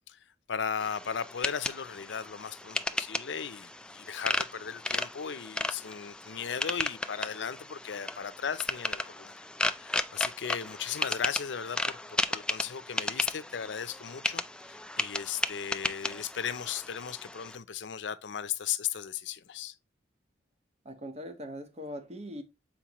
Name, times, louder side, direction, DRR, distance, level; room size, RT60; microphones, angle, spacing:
voice 1, 0.5-19.7, left 7 dB, 90° left, 0.6 m, -36 dB
sound 1, 0.8-17.6, left 2 dB, 5° left, 0.3 m, -35 dB
voice 2, 20.8-22.4, equal, 35° right, 1.1 m, -41 dB
7.3 x 4.5 x 3.0 m
head